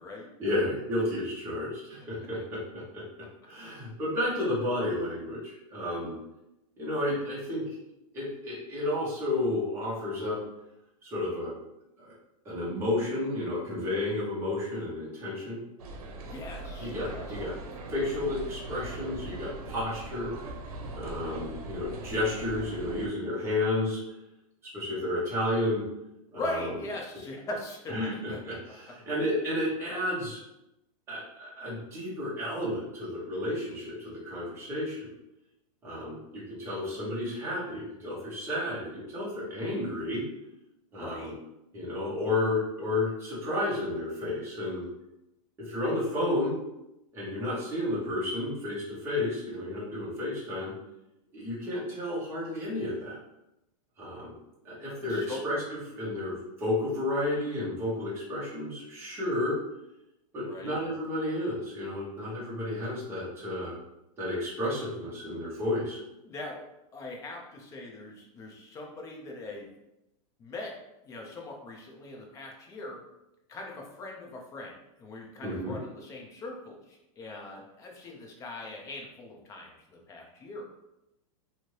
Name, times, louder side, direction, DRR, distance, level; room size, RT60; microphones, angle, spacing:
voice 1, 0.4-3.0 3.4-6.2 6.8-7.8 8.1-10.4 11.0-11.5 12.0-12.1 12.4-15.6 16.8-17.5 17.9-20.3 20.9-24.0 24.7-25.8 26.3-26.7 27.9-30.4 31.1-35.1 35.8-40.2 40.9-41.3 41.7-44.8 45.7-46.6 47.1-50.7 51.3-53.2 54.0-54.3 54.6-59.6 60.3-63.8 64.2-66.0 75.4-75.8, left 1 dB, 15° right, -8 dB, 1.0 m, -32 dB
sound 1, 15.8-23.1, right 2 dB, 85° right, 0.7 m, -41 dB
voice 2, 16.2-17.4 26.3-28.4 40.9-41.3 55.1-55.5 60.4-60.8 66.2-66.6 66.9-69.7 70.4-70.7 71.0-73.0 73.5-80.7, left 2 dB, 15° left, 0 dB, 0.5 m, -41 dB
2.7 x 2.6 x 3.1 m, 0.88 s
supercardioid pair, 155°, 19 cm